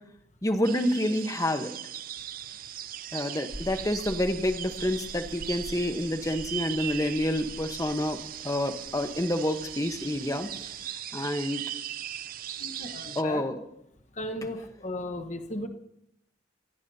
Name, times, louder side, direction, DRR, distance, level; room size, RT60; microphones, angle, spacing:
voice 1, 0.4-1.7 3.1-10.5 11.1-11.6 13.2-13.6, left 1 dB, 20° left, 7 dB, 1.1 m, -28 dB
sound 1, 0.6-13.2, right 11 dB, 50° right, 0.5 m, -39 dB
sound 2, 3.5-10.8, equal, 30° right, 2.9 m, -47 dB
voice 2, 12.6-13.4 14.1-15.7, left 1 dB, 40° left, 7 dB, 1.2 m, -35 dB
25.5 x 16.0 x 2.8 m, 0.80 s
head